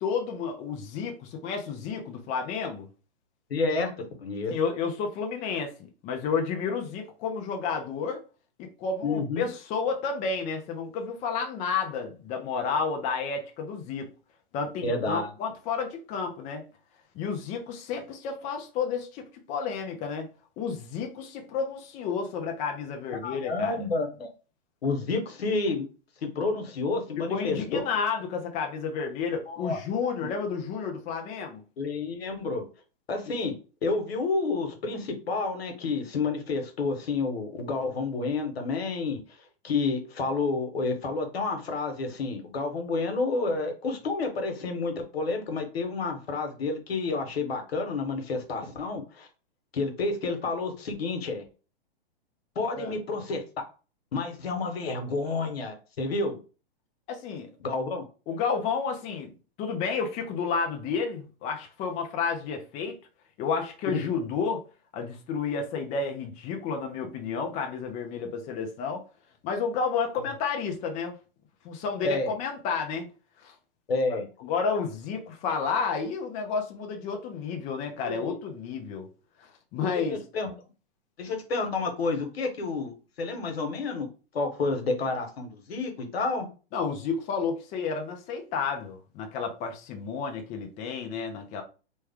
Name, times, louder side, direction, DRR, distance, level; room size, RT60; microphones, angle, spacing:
voice 1, 0.0-2.9 4.5-5.7 6.0-8.2 8.8-14.1 14.5-16.6 17.1-20.3 20.6-23.9 27.3-31.6 52.8-52.9 57.1-57.5 58.3-59.3 59.6-63.0 63.4-64.6 64.9-69.0 69.4-71.2 71.6-73.1 73.4-73.5 74.4-79.1 79.4-80.2 86.7-91.6, left 5 dB, 25° left, 0.6 m, -31 dB
voice 2, 3.5-3.9 4.2-4.5 9.0-9.5 14.8-15.3 23.2-24.3 24.8-25.8 26.2-27.8 29.5-29.8 31.8-32.6 33.1-33.5 33.8-39.2 39.6-49.3 49.7-51.5 52.5-53.4 54.1-56.4 57.6-58.0 72.0-72.3 73.9-74.3 78.0-78.3 80.1-80.5 81.2-84.1 84.3-86.5, left 3 dB, 80° left, 1.2 m, -29 dB
3.1 x 2.2 x 3.5 m
hypercardioid pair, 125°, 30 cm